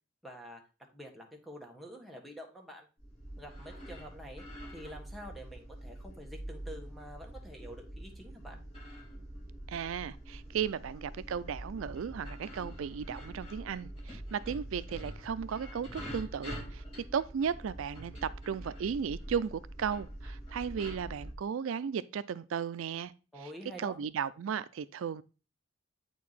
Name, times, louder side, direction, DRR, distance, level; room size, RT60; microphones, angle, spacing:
voice 1, 0.2-0.6 0.9-2.9 3.4-4.4 4.7-8.6 23.3-24.0, equal, ahead, 1.4 m, -47 dB
sound 1, 3.0-21.3, right 1 dB, 30° left, 4.5 m, -45 dB
voice 2, 9.7-16.8 17.1-23.1 23.8-25.2, right 7 dB, 80° right, 0.4 m, -35 dB
8.4 x 4.7 x 4.1 m
head